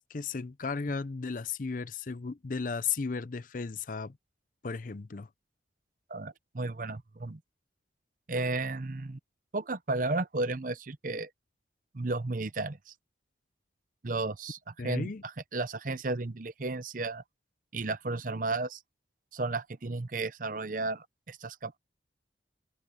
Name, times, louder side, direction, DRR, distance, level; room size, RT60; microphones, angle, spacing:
voice 1, 0.0-4.2 4.6-5.3 14.8-15.2, left 5 dB, 45° left, 0.5 m, -35 dB
voice 2, 6.1-7.4 8.3-9.2 9.5-11.3 11.9-12.9 14.0-14.6 14.8-17.2 17.7-18.8 19.3-21.8, right 3 dB, 45° right, 0.8 m, -33 dB
open air
head